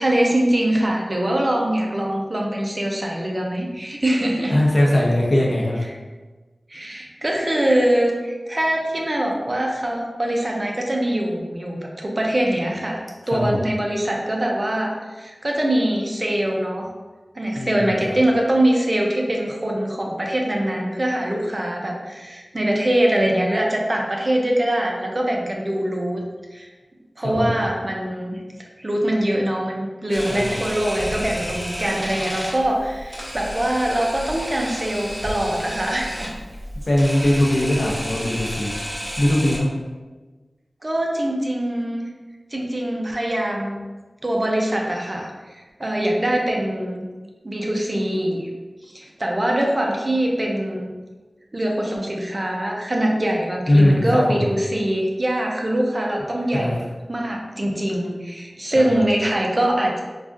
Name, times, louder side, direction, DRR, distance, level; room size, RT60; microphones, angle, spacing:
voice 1, 0.0-4.6 6.7-13.0 13.3-16.9 17.4-26.2 26.5-26.7 27.2-28.4 28.8-36.4 40.8-42.0 42.5-43.8 44.2-47.1 47.4-48.5 48.8-50.9 51.5-56.7 57.1-60.0, right 1 dB, 35° right, 0 dB, 0.5 m, -23 dB
voice 2, 4.5-5.9 13.3-13.6 17.5-18.2 27.2-27.5 30.3-30.7 36.9-38.7 39.2-39.7 53.7-54.5 56.5-56.7 58.7-59.1, left 1 dB, 50° left, -3 dB, 0.7 m, -20 dB
Camera, 30.1-39.6, equal, 5° right, 0.8 m, -32 dB
3.5 x 2.3 x 2.5 m, 1.3 s
wide cardioid pair, 60°, 0 cm